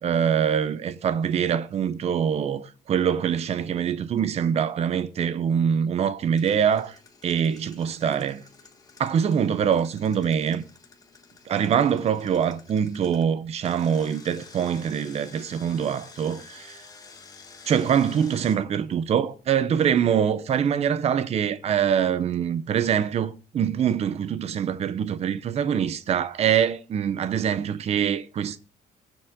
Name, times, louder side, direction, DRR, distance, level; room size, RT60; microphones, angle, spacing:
voice 1, 0.0-7.0 7.2-8.4 9.0-10.6 11.5-16.8 17.7-28.6, right 8 dB, 40° right, 0.8 m, -24 dB
Engine, 6.4-13.2 13.6-18.6, left 4 dB, 20° left, 1.5 m, -50 dB
21.0 x 7.3 x 3.7 m
cardioid pair, 175°, 17 cm